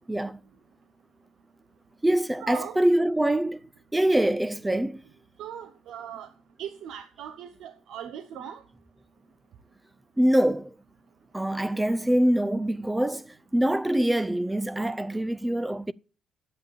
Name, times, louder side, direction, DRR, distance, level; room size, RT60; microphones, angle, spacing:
voice 1, 0.1-0.4 2.0-5.0 10.2-10.7 11.3-15.9, right 1 dB, 10° right, 0.4 m, -24 dB
voice 2, 2.4-2.8 5.4-6.3 6.6-8.6, right 9 dB, 80° right, 1.0 m, -39 dB
10.0 x 8.3 x 7.1 m
cardioid pair, 90°, 0 cm